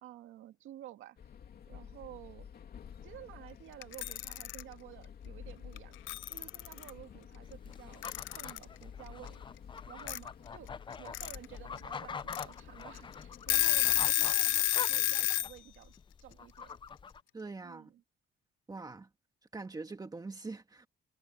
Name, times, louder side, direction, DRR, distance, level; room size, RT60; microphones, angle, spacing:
voice 1, 0.0-1.2 1.7-2.5 3.0-8.1 8.3-9.4 9.9-15.9 16.2-16.8 17.6-18.0, right 13 dB, 85° right, 2.0 m, -52 dB
sound 1, 1.2-14.1, left 8 dB, 50° left, 2.8 m, -51 dB
Alarm / Clock, 3.8-4.6 5.8-5.9 6.1-6.9 8.0-8.6 10.1-10.2 10.9-11.4 11.8-11.9 12.3-12.4 13.0-13.1 13.3-15.5, left 15 dB, 75° left, 0.5 m, -29 dB
sound 2, 7.4-17.2, left 6 dB, 25° left, 0.5 m, -45 dB
voice 2, 17.3-17.9 18.7-19.1 19.5-20.9, right 3 dB, 20° right, 1.8 m, -43 dB
cardioid pair, 125°, 20 cm